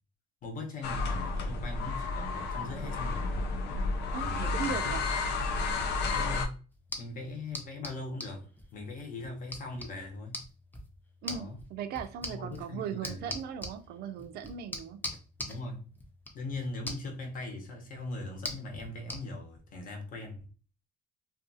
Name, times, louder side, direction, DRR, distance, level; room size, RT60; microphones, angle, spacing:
voice 1, 0.4-3.5 4.2-5.0 5.4-5.5 6.1-6.6 7.0-8.4 8.7-10.4 11.2-11.6 12.3-13.3 15.5-15.9 16.3-20.5, left 2 dB, 55° left, 0.9 m, -40 dB
sound 1, 0.8-6.5, left 3 dB, 80° left, 0.5 m, -31 dB
voice 2, 4.1-5.0 11.2-15.0, right 7 dB, 70° right, 0.4 m, -38 dB
sound 2, 6.7-19.2, left 1 dB, 10° left, 0.5 m, -44 dB
2.4 x 2.3 x 2.6 m
cardioid pair, 110°, 17 cm